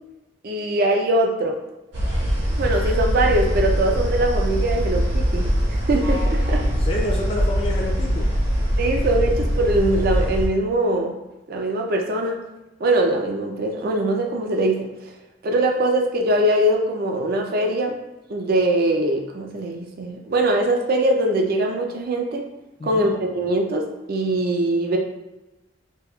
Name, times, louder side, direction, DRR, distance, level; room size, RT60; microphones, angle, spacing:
voice 1, 0.4-1.6 2.6-5.5 5.9-6.6 8.8-11.2 11.5-12.4 12.8-14.9 15.4-18.0 18.3-22.5 22.8-25.0, right 1 dB, 55° right, 3 dB, 0.4 m, -22 dB
sound 1, 1.9-10.5, equal, 70° right, 1.1 m, -22 dB
voice 2, 6.6-8.3 22.8-23.1, left 1 dB, 30° left, -2 dB, 0.4 m, -29 dB
5.1 x 2.3 x 2.2 m, 0.99 s
head